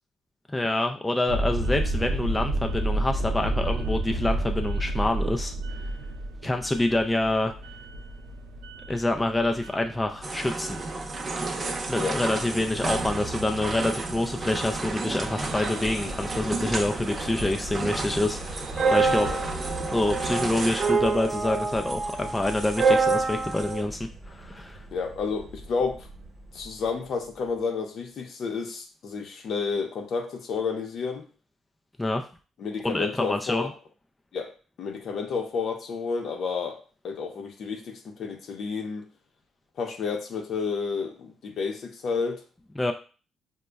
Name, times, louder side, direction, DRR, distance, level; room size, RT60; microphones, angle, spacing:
voice 1, 0.5-5.8 6.4-7.5 8.9-10.8 11.9-19.3 19.9-24.8 32.0-32.2 32.8-33.7 42.8-42.9, left 2 dB, 15° left, 4 dB, 0.3 m, -27 dB
sound 1, 1.3-13.1, right 1 dB, 90° right, 0.4 m, -31 dB
sound 2, 10.2-23.8, right 4 dB, 35° right, 0.7 m, -29 dB
Vehicle, 12.1-27.6, right 2 dB, 60° right, 0.9 m, -40 dB
voice 2, 24.9-26.1 26.5-31.3 32.6-33.7 34.3-34.5 34.8-39.1 39.8-42.4, left 5 dB, 65° left, 4 dB, 0.7 m, -31 dB
5.0 x 2.2 x 2.2 m, 0.37 s
cardioid pair, 90°, 0 cm